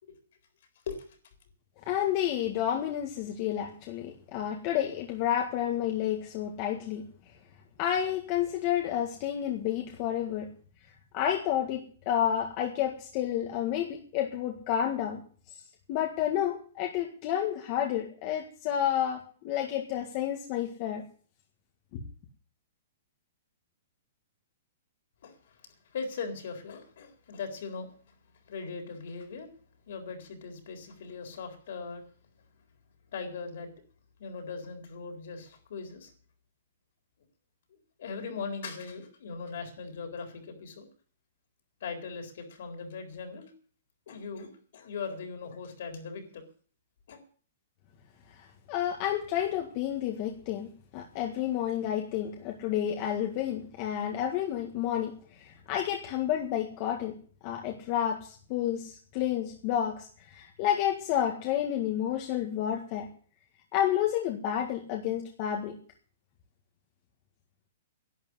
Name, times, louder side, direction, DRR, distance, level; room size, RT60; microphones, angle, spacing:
voice 1, 1.9-7.0 7.8-10.5 11.1-15.2 15.9-21.0 21.9-22.0 48.4-50.7 50.9-57.2 57.4-63.1 63.7-65.8, left 10 dB, 35° left, 1 dB, 1.8 m, -30 dB
voice 2, 25.2-25.6 25.9-28.2 28.5-29.5 29.9-32.0 33.1-33.7 34.2-36.1 37.7-40.9 41.8-43.5 44.1-46.4 47.1-47.2, left 5 dB, 60° left, 5 dB, 4.0 m, -39 dB
11.5 x 8.8 x 9.7 m, 0.43 s
hypercardioid pair, 165°, 0 cm